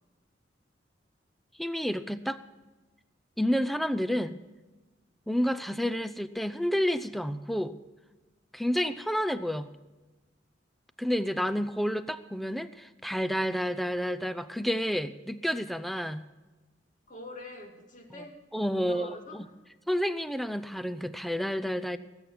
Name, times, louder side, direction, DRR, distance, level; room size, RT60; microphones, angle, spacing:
voice 1, 1.6-2.4 3.4-4.4 5.3-7.8 8.5-9.7 11.0-16.2 18.5-19.4 19.9-22.0, equal, ahead, 12 dB, 0.6 m, -30 dB
voice 2, 17.1-18.4 18.7-19.5, left 2 dB, 45° left, 2 dB, 2.4 m, -45 dB
19.0 x 8.5 x 6.1 m, 1.1 s
head